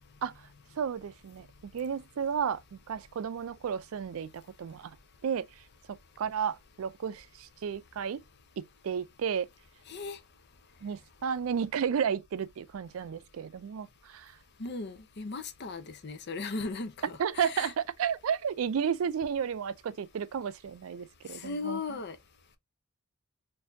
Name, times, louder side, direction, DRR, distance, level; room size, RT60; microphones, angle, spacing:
voice 1, 0.8-1.5 1.7-5.0 5.2-5.5 5.9-8.2 8.6-9.5 10.8-14.3 17.2-21.8, right 7 dB, 70° right, 0.4 m, -32 dB
voice 2, 9.9-10.2 14.6-17.7 21.3-22.2, left 4 dB, 50° left, 0.7 m, -37 dB
4.3 x 2.7 x 2.6 m
head